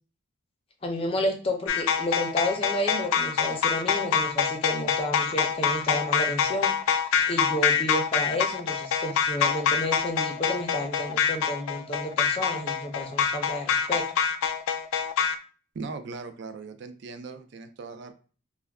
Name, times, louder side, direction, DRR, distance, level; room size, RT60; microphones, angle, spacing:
voice 1, 0.8-14.0, equal, 25° left, 2 dB, 0.5 m, -31 dB
sound 1, 1.7-15.4, left 7 dB, 85° left, 0.3 m, -25 dB
voice 2, 15.7-18.1, right 4 dB, 55° right, 8 dB, 0.3 m, -39 dB
2.3 x 2.1 x 3.4 m, 0.38 s
head